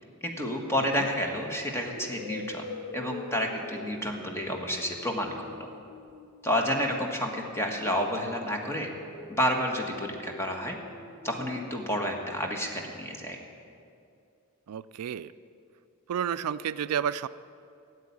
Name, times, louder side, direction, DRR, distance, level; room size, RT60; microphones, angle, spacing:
voice 1, 0.2-2.7 2.9-5.7 6.4-8.9 9.3-10.8 11.2-13.4, equal, 10° left, 1 dB, 1.5 m, -30 dB
sound 1, 0.8-1.1 1.9-7.2 7.6-11.6, left 2 dB, 65° left, 1.4 m, -45 dB
voice 2, 14.7-15.3 16.1-17.3, right 8 dB, 90° right, 16 dB, 0.4 m, -31 dB
13.0 x 8.3 x 9.7 m, 2.5 s
head